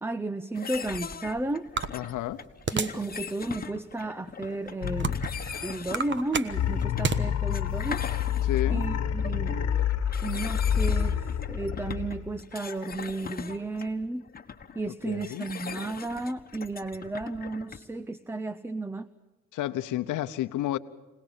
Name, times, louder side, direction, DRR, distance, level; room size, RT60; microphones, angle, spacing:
voice 1, 0.0-1.7 2.7-5.2 5.6-8.0 8.7-9.6 10.2-14.2 14.7-19.1, right 2 dB, 10° right, 0.7 m, -33 dB
sound 1, 0.5-18.0, left 6 dB, 30° left, 1.5 m, -41 dB
sound 2, 1.8-3.1 3.6-3.8 4.4-5.4 5.8-7.2, right 5 dB, 40° right, 1.3 m, -30 dB
voice 2, 1.9-2.4 8.4-8.9 14.9-15.5 19.5-20.8, left 13 dB, 85° left, 1.0 m, -31 dB
sound 3, 4.8-5.9 6.5-12.4, left 8 dB, 55° left, 1.5 m, -28 dB
25.5 x 19.0 x 7.2 m
cardioid pair, 90°, 30 cm